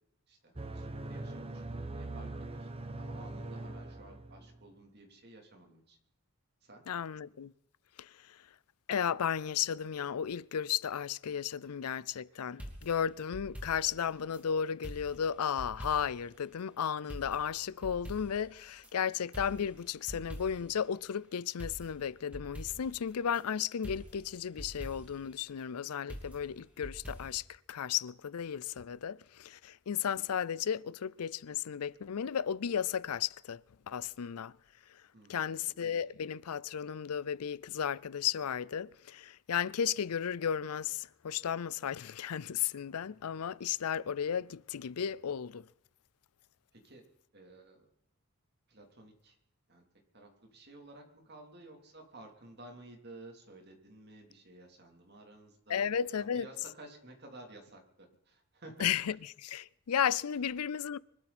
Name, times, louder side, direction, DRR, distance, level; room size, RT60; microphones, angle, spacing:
voice 1, 0.3-2.7 2.9-6.0 6.6-6.8 35.1-35.8 46.7-47.0 47.3-47.9 48.7-49.4 49.7-49.8 50.1-55.8 56.2-58.9, right 2 dB, 45° right, 3.3 m, -53 dB
sound 1, 0.6-4.6, right 2 dB, 25° right, 1.0 m, -42 dB
voice 2, 6.9-7.5 8.0-8.4 8.9-34.5 35.3-45.7 55.7-56.5 58.8-61.0, left 8 dB, 90° left, 0.5 m, -34 dB
sound 2, 12.6-14.4 14.8-16.3 16.6-16.7 17.1-18.9 19.3-20.8 21.1-21.2 21.6-23.4 23.8-25.3 26.1-27.4, equal, 5° right, 2.9 m, -46 dB
24.0 x 13.0 x 4.3 m
head